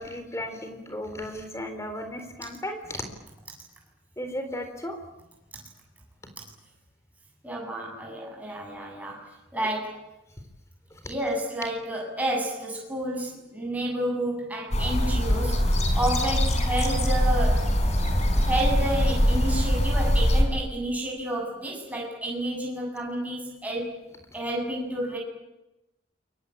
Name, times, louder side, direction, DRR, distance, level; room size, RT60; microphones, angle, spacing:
voice 1, 0.0-3.0 4.2-5.0 10.9-11.0, left 1 dB, 15° left, 7 dB, 3.9 m, -35 dB
voice 2, 7.4-10.0 11.0-17.7 18.5-24.0 24.3-25.2, right 1 dB, 10° right, -1 dB, 7.9 m, -30 dB
sound 1, 14.7-20.4, equal, 35° left, 4.5 m, -23 dB
28.0 x 24.0 x 8.8 m, 0.95 s
head